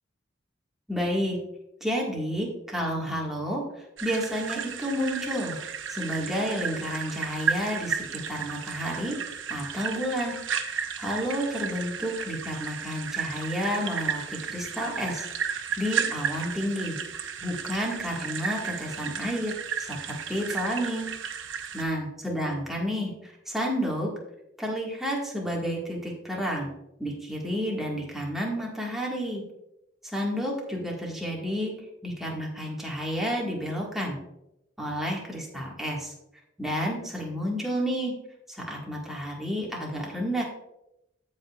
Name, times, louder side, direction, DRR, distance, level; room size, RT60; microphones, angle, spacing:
voice 1, 0.9-1.4 1.8-5.6 5.9-9.2 9.5-10.4 10.7-17.0 17.4-21.1 21.7-24.1 24.6-26.7 27.0-29.4 30.0-31.7 32.0-34.2 34.8-36.1 36.6-38.2 38.5-40.4, equal, ahead, -3 dB, 1.8 m, -30 dB
sound 1, 4.0-21.8, right 7 dB, 80° right, 0.8 m, -33 dB
15.5 x 5.3 x 2.4 m, 0.86 s
head